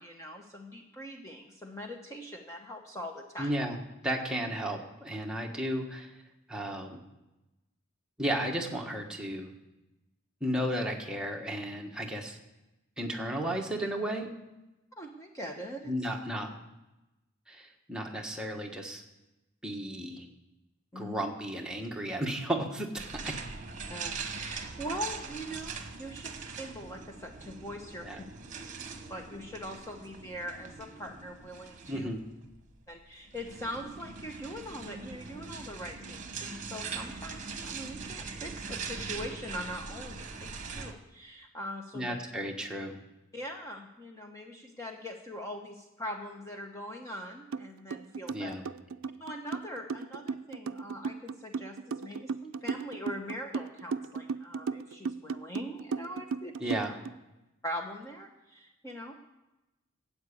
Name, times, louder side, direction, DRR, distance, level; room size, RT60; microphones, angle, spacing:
voice 1, 0.0-3.5 15.0-16.1 20.9-21.2 23.9-26.3 26.6-28.2 29.1-32.1 32.9-42.2 43.3-48.5 49.2-56.8 57.6-59.1, equal, 15° left, 2 dB, 1.0 m, -42 dB
voice 2, 3.4-3.8 4.0-6.1 6.5-7.0 8.2-9.5 10.4-12.4 13.0-14.3 15.9-16.5 17.5-19.0 19.6-20.3 20.9-23.3 28.0-28.2 31.9-32.2 41.9-43.0 48.3-48.6 56.6-57.0, right 1 dB, 5° right, 0 dB, 1.4 m, -34 dB
sound 1, 23.0-40.9, right 5 dB, 40° right, 1.3 m, -42 dB
sound 2, 47.5-47.6 47.9-57.1, right 5 dB, 85° right, 0.4 m, -35 dB
13.0 x 8.3 x 8.5 m, 1.0 s
head